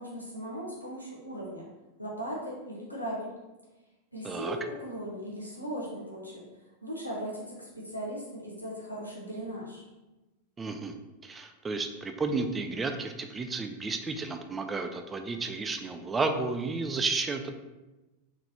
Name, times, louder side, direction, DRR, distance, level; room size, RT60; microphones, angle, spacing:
voice 1, 0.0-1.6 2.0-3.3 4.1-6.4 6.8-9.8, equal, 90° left, -5 dB, 1.1 m, -38 dB
voice 2, 4.2-4.6 10.6-10.9 11.2-17.5, right 3 dB, 15° right, 6 dB, 0.3 m, -32 dB
3.7 x 3.6 x 2.9 m, 1.1 s
figure-of-eight pair, 90°, 0 cm